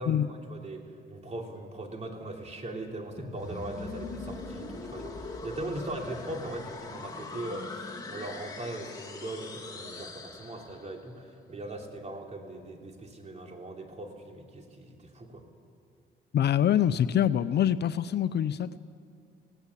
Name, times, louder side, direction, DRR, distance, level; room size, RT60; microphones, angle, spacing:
voice 1, 0.0-7.8 8.1-15.4, right 1 dB, 35° right, 2 dB, 3.1 m, -40 dB
sound 1, 3.2-11.1, left 3 dB, 20° left, 2.5 m, -41 dB
voice 2, 16.3-18.8, left 10 dB, 55° left, 14 dB, 0.6 m, -25 dB
18.0 x 17.0 x 8.5 m, 2.2 s
cardioid pair, 90°, 20 cm